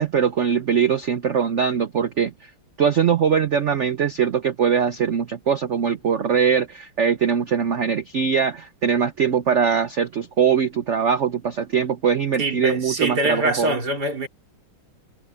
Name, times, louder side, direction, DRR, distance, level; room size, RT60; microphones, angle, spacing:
voice 1, 0.0-2.5 2.8-13.7, right 7 dB, 75° right, 0.6 m, -21 dB
voice 2, 12.4-14.3, right 1 dB, 50° right, 4.2 m, -24 dB
omnidirectional pair, 2.2 m